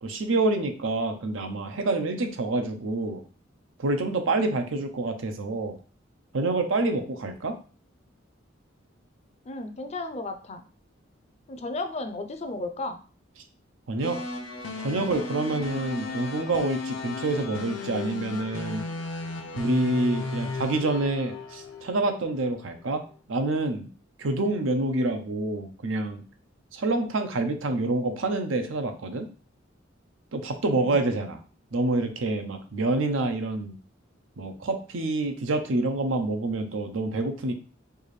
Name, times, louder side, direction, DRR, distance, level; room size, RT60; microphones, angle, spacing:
voice 1, 0.0-3.2 3.8-5.8 6.3-7.6 13.9-14.2 14.8-18.9 19.5-23.0 23.3-23.9 24.2-26.2 26.7-29.3 30.3-31.4 31.7-33.8 34.4-37.5, right 2 dB, 85° right, 6 dB, 0.6 m, -27 dB
voice 2, 9.5-10.6 11.5-13.0 30.7-31.0, left 2 dB, 35° left, 8 dB, 0.5 m, -34 dB
sound 1, 14.0-22.2, left 3 dB, 85° left, 0.7 m, -35 dB
4.6 x 2.5 x 3.2 m, 0.38 s
head